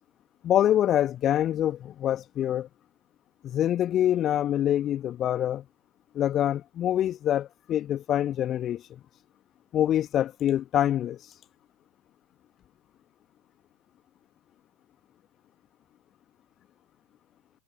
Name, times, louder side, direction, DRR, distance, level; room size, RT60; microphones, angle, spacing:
voice 1, 0.4-2.7 3.4-5.6 6.1-8.8 9.7-11.2, left 11 dB, 30° left, 1.5 m, -25 dB
figure-of-eight pair, 90°, 0 cm